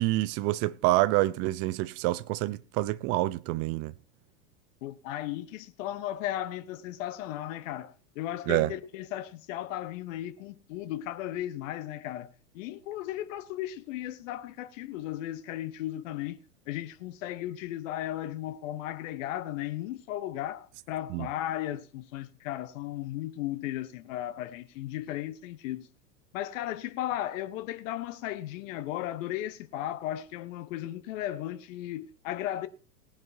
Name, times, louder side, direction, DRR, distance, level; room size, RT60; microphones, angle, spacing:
voice 1, 0.0-3.9 8.5-8.7 21.1-21.3, right 18 dB, 30° right, 0.5 m, -27 dB
voice 2, 4.8-12.3 12.5-16.4 16.7-25.9 26.3-32.7, left 13 dB, 55° left, 1.2 m, -35 dB
19.0 x 10.5 x 2.7 m
hypercardioid pair, 100°, 47 cm